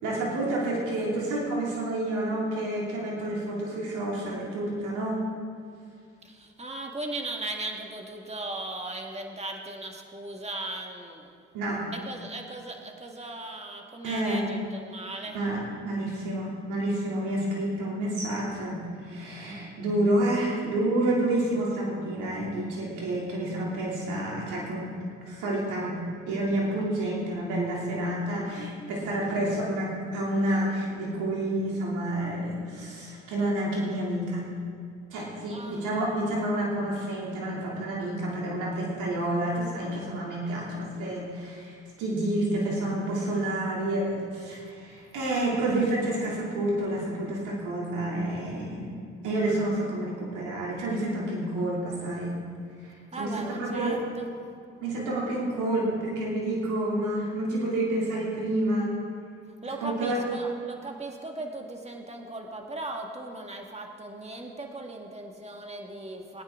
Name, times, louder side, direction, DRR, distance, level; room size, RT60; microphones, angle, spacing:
voice 1, 0.0-5.2 11.5-11.8 14.0-14.4 15.3-24.9 25.3-34.4 35.1-48.9 49.2-52.4 52.8-53.9 54.8-59.0 59.8-60.2, right 1 dB, 85° right, -4 dB, 3.0 m, -29 dB
voice 2, 6.2-11.3 11.9-15.4 35.5-35.9 53.1-54.3 59.6-66.4, right 2 dB, 20° right, 2 dB, 1.9 m, -37 dB
21.5 x 9.5 x 3.8 m, 2.4 s
supercardioid pair, 55°, 30 cm